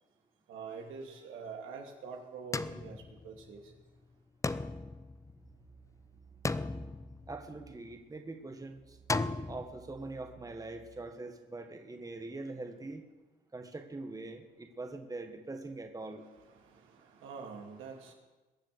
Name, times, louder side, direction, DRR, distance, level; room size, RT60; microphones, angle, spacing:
voice 1, 0.5-3.6 16.5-18.1, right 5 dB, 85° right, 1 dB, 2.5 m, -45 dB
sound 1, 2.5-3.7 4.4-5.9 6.4-7.8 9.1-9.6, left 3 dB, 15° left, 0.5 m, -36 dB
sound 2, 4.7-11.1, right 7 dB, 45° right, 1.2 m, -60 dB
voice 2, 7.3-9.0 9.5-13.0 13.5-16.2, right 2 dB, 20° right, 5 dB, 1.5 m, -43 dB
21.5 x 7.5 x 6.8 m, 1.2 s
cardioid pair, 90°, 20 cm